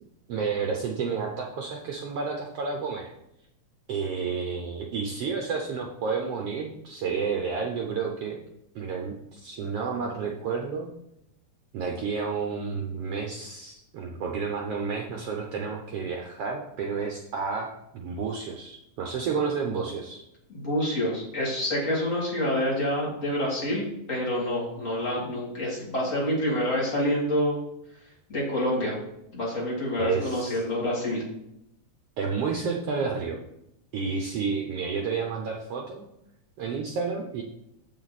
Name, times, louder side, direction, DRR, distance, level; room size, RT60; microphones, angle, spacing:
voice 1, 0.3-3.1 3.9-8.4 8.7-10.9 11.7-17.7 17.9-20.2 30.0-30.6 32.2-33.4 33.9-36.0 36.6-37.4, right 5 dB, 85° right, 1 dB, 1.3 m, -30 dB
voice 2, 20.5-27.6 28.3-29.0 29.3-31.2, left 1 dB, 25° left, -5 dB, 2.5 m, -27 dB
7.7 x 7.3 x 4.1 m, 0.81 s
omnidirectional pair, 3.8 m